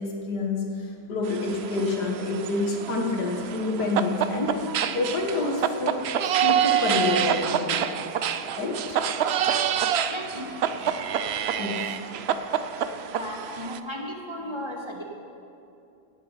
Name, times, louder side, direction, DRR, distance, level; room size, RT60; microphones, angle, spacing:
voice 1, 0.0-7.9 8.6-9.0 11.6-12.0, left 2 dB, 85° left, 1 dB, 1.9 m, -28 dB
sound 1, 1.3-13.8, right 9 dB, 90° right, 0.5 m, -27 dB
voice 2, 10.1-10.5 13.1-15.0, equal, 20° right, -1 dB, 1.4 m, -35 dB
17.5 x 7.7 x 5.5 m, 2.7 s
omnidirectional pair, 1.7 m